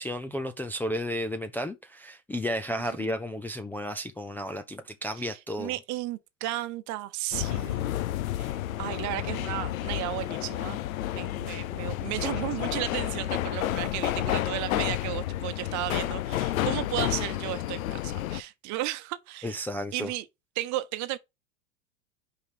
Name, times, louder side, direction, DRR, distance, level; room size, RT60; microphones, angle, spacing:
voice 1, 0.0-5.7 19.4-20.1, equal, 5° left, 0.5 m, -33 dB
voice 2, 2.8-3.1 5.2-7.9 8.3-10.8 11.1-19.6 19.9-20.3 20.6-21.2, right 16 dB, 45° right, 1.0 m, -34 dB
sound 1, 7.3-18.4, left 14 dB, 80° left, 0.6 m, -30 dB
5.5 x 4.9 x 6.0 m
hypercardioid pair, 100°, 41 cm